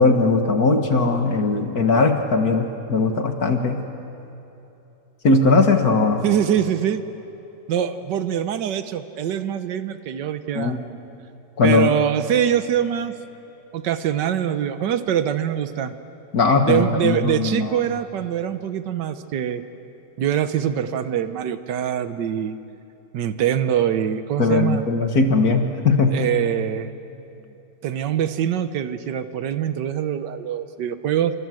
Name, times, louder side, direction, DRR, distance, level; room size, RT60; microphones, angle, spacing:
voice 1, 0.0-3.8 5.2-6.2 10.6-10.8 11.6-11.9 16.3-17.7 24.4-26.3, left 3 dB, 60° left, 5 dB, 2.0 m, -19 dB
voice 2, 6.2-7.0 7.7-10.8 11.6-13.1 13.7-15.9 16.7-19.6 20.2-22.6 23.1-24.8 26.1-26.9 27.8-31.3, right 9 dB, 85° right, 10 dB, 1.6 m, -23 dB
28.5 x 25.0 x 7.8 m, 2.9 s
omnidirectional pair, 1.8 m